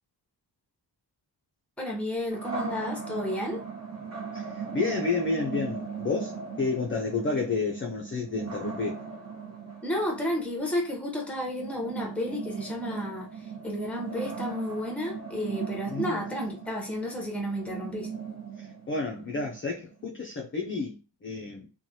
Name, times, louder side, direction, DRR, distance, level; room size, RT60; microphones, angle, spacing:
voice 1, 1.8-3.6 9.8-18.1, left 1 dB, 5° left, 0.7 m, -32 dB
sound 1, 2.3-20.1, right 5 dB, 35° right, 1.0 m, -38 dB
voice 2, 4.3-9.0 15.9-16.2 18.6-21.7, left 4 dB, 30° left, 0.4 m, -31 dB
3.1 x 2.2 x 2.6 m
wide cardioid pair, 160°, 44 cm